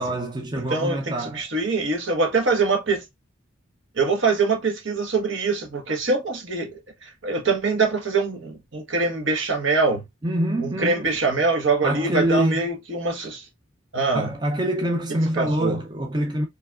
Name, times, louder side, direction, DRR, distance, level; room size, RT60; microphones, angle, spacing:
voice 1, 0.0-1.5 10.2-11.2 11.8-12.6 14.1-16.5, right 1 dB, 20° right, 0.6 m, -25 dB
voice 2, 0.5-3.0 3.9-10.0 10.6-13.4 13.9-14.3 15.3-15.8, right 3 dB, 70° right, 1.3 m, -24 dB
4.6 x 3.2 x 2.4 m
head